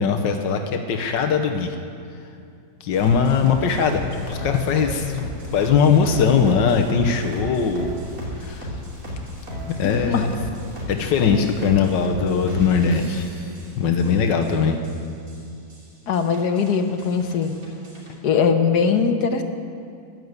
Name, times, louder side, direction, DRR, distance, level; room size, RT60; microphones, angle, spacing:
voice 1, 0.0-1.8 2.8-5.3 5.5-8.0 8.4-8.7 9.7-10.3 10.9-13.3 13.8-14.8, left 6 dB, 90° left, 4 dB, 1.6 m, -20 dB
sound 1, 2.9-18.2, left 1 dB, 50° right, 3.1 m, -35 dB
voice 2, 9.8-10.3 16.1-17.6 18.2-19.4, left 6 dB, 65° left, 7 dB, 1.5 m, -21 dB
14.0 x 11.0 x 8.0 m, 2.4 s
omnidirectional pair, 1.9 m